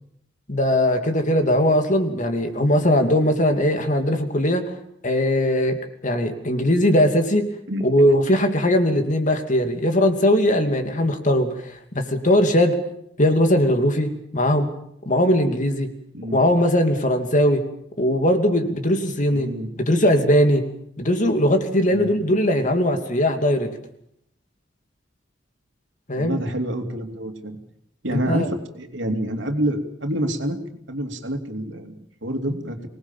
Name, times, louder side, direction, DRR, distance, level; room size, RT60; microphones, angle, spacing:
voice 1, 0.5-4.7 5.0-7.5 7.8-12.8 13.2-14.7 15.1-15.9 16.3-17.6 18.0-20.7 21.0-23.7 26.1-26.4 28.1-28.5, left 1 dB, 40° left, 6 dB, 2.7 m, -20 dB
voice 2, 7.7-8.1 16.1-16.4 19.3-19.7 21.9-22.1 26.1-27.6 28.0-30.6 30.9-32.9, right 1 dB, 75° right, 5 dB, 2.8 m, -27 dB
24.5 x 19.5 x 7.4 m, 0.72 s
head